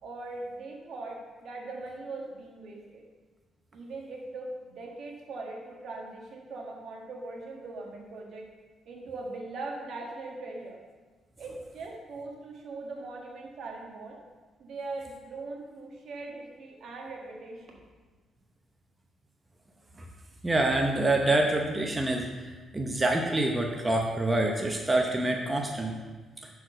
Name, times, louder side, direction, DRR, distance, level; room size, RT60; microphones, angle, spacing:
voice 1, 0.0-3.0 3.7-8.5 8.8-10.8 11.4-14.2 14.6-17.8, right 3 dB, 65° right, -1 dB, 1.6 m, -40 dB
voice 2, 20.4-25.9, right 2 dB, 20° right, 1 dB, 0.8 m, -26 dB
6.0 x 4.7 x 6.3 m, 1.3 s
cardioid pair, 90°, 0 cm